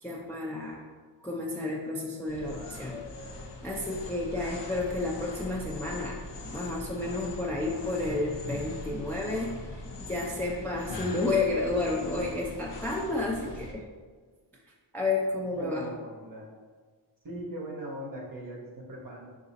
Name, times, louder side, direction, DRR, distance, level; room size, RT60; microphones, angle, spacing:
voice 1, 0.0-0.8 1.2-6.2 6.5-13.8 14.9-15.9, left 2 dB, 5° left, -3 dB, 0.4 m, -31 dB
sound 1, 2.3-13.7, left 2 dB, 65° left, 0.7 m, -41 dB
voice 2, 15.5-16.5 17.2-19.3, equal, 45° right, -2 dB, 0.7 m, -39 dB
4.9 x 2.5 x 3.9 m, 1.5 s
wide cardioid pair, 120°, 46 cm